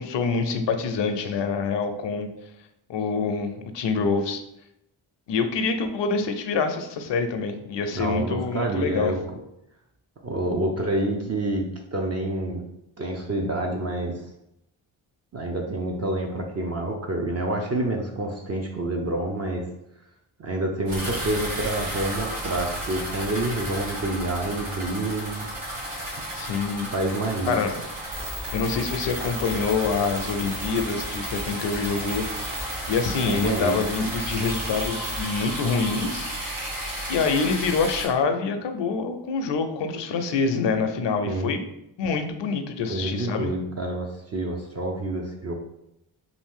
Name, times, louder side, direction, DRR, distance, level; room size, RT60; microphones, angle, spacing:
voice 1, 0.0-2.3 2.9-4.4 5.3-9.1 26.3-26.9 27.5-27.7 28.5-32.3 32.9-36.3 37.1-41.6 42.0-43.5, left 5 dB, 60° left, 7 dB, 0.6 m, -26 dB
voice 2, 7.9-9.2 10.2-12.6 13.0-14.3 15.3-19.7 20.4-25.5 26.9-27.8 33.2-33.8 41.3-41.5 42.9-45.5, right 2 dB, 30° right, 0 dB, 0.5 m, -28 dB
sound 1, 20.9-38.1, right 1 dB, 80° right, 1.5 m, -33 dB
sound 2, 28.1-35.2, right 1 dB, 60° right, 1.0 m, -35 dB
2.7 x 2.4 x 3.6 m, 0.82 s
supercardioid pair, 45°, 50 cm